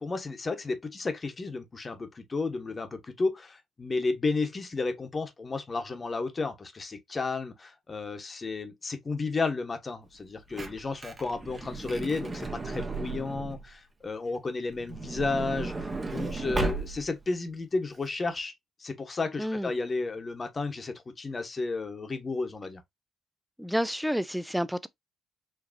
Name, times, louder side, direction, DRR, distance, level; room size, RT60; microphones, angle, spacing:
voice 1, 0.0-18.5 18.8-22.8, left 3 dB, 30° left, 1.0 m, -32 dB
Truck / Door, 10.2-13.7 14.7-17.3 17.9-18.0 18.2-18.4, right 3 dB, 25° right, 1.0 m, -35 dB
voice 2, 19.4-19.7 23.6-24.9, equal, ahead, 0.4 m, -29 dB
5.0 x 2.9 x 2.5 m
cardioid pair, 90°, 0 cm